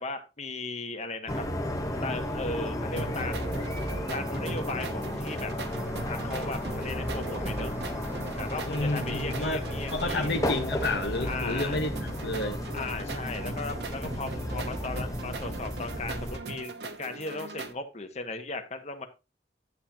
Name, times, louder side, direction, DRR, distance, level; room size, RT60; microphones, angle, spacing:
voice 1, 0.0-1.4 2.0-3.5 4.1-5.5 6.1-7.7 8.4-10.3 11.2-11.8 12.7-19.1, left 3 dB, 40° left, 1.5 m, -37 dB
sound 1, 1.3-16.4, left 1 dB, 20° left, 1.2 m, -34 dB
sound 2, 3.0-17.7, right 2 dB, 70° right, 1.1 m, -39 dB
sound 3, 5.7-12.5, right 1 dB, 10° right, 1.0 m, -47 dB
voice 2, 8.7-9.6 9.9-11.9 12.2-12.6, left 2 dB, 70° left, 1.2 m, -30 dB
11.0 x 7.7 x 2.9 m
head